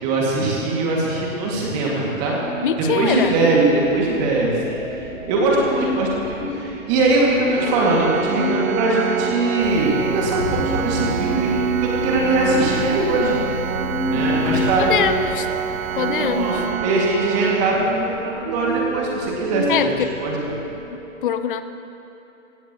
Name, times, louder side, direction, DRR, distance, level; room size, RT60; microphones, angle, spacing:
voice 1, 0.0-2.4 2.9-11.5 11.8-13.4 14.1-14.9 16.0-19.9 20.2-20.3, right 2 dB, 30° right, -4 dB, 2.3 m, -21 dB
sound 1, 1.6-20.8, right 1 dB, 50° right, 3.0 m, -30 dB
voice 2, 2.6-3.3 14.8-15.5 15.9-16.6 19.7-20.2 20.9-21.6, left 9 dB, 40° left, 11 dB, 0.6 m, -23 dB
Organ, 7.5-18.4, right 10 dB, 90° right, 0.5 m, -27 dB
sound 2, 9.6-16.7, left 2 dB, 70° left, 3.3 m, -33 dB
16.0 x 16.0 x 3.1 m, 2.9 s
hypercardioid pair, 150°, 40 cm